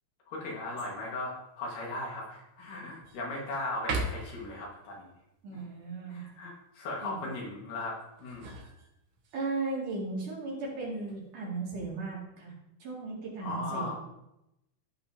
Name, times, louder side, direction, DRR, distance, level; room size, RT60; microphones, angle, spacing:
voice 1, 0.3-5.1 5.5-5.6 6.1-8.6 13.4-13.9, left 2 dB, 75° left, -3 dB, 3.4 m, -38 dB
sound 1, 0.8-1.2 1.8-1.9 2.4-3.2 3.7-4.5 8.0-9.4 10.8-11.3, right 2 dB, 90° right, 1.2 m, -38 dB
voice 2, 5.4-6.2 7.0-7.2 9.3-12.5 12.8-13.9, right 3 dB, 65° right, -4 dB, 3.9 m, -36 dB
15.0 x 5.4 x 2.8 m, 0.86 s
omnidirectional pair, 4.0 m